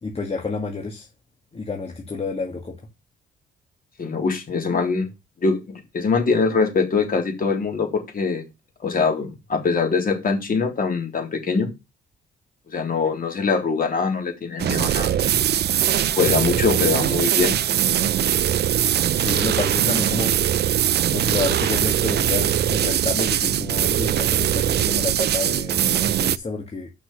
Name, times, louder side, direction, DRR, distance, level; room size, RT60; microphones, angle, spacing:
voice 1, 0.0-1.1 1.5-2.8 19.1-20.3 21.1-26.9, left 3 dB, 30° left, 1.7 m, -29 dB
voice 2, 4.0-5.1 5.4-8.4 8.8-11.7 12.7-15.1 16.1-17.5, left 4 dB, 45° left, 3.5 m, -23 dB
sound 1, 14.6-26.4, right 11 dB, 55° right, 0.5 m, -21 dB
6.5 x 5.9 x 5.7 m
cardioid pair, 90°, 20 cm